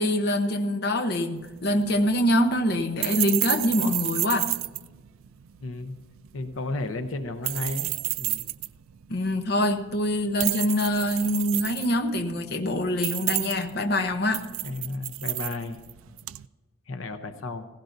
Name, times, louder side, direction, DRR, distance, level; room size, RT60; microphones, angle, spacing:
voice 1, 0.0-4.5 9.1-14.4, left 1 dB, 50° left, 5 dB, 0.9 m, -25 dB
sound 1, 1.4-16.4, right 17 dB, 90° right, 0.4 m, -32 dB
voice 2, 5.6-6.0 6.3-8.5 14.6-15.8 16.9-17.7, left 2 dB, 80° left, 9 dB, 0.8 m, -33 dB
17.5 x 16.0 x 2.7 m, 1.3 s
head